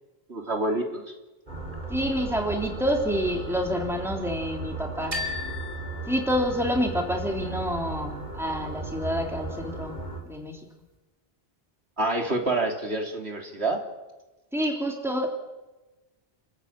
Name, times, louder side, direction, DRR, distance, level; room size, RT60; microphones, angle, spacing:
voice 1, 0.3-1.0 12.0-13.8, right 2 dB, 80° right, 2 dB, 3.4 m, -27 dB
sound 1, 1.5-10.2, right 3 dB, 45° right, 4.6 m, -36 dB
voice 2, 1.9-5.2 6.1-10.0 10.3-10.6 14.5-15.3, equal, ahead, 1 dB, 3.5 m, -28 dB
sound 2, 5.1-7.0, left 4 dB, 65° right, 3.8 m, -36 dB
29.5 x 14.0 x 8.8 m, 1.1 s
omnidirectional pair, 1.1 m